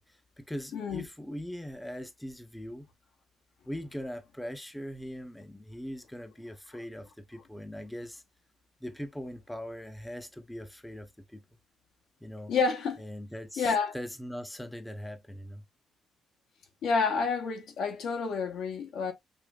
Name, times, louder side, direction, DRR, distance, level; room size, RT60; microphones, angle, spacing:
voice 1, 0.0-2.9 3.6-8.2 8.8-11.4 12.2-12.5 13.0-15.6, equal, 5° left, 0.6 m, -41 dB
voice 2, 0.7-1.1 12.5-13.0 13.6-14.0 16.8-19.1, left 5 dB, 80° left, 0.9 m, -29 dB
5.0 x 2.7 x 2.3 m
cardioid pair, 90°, 0 cm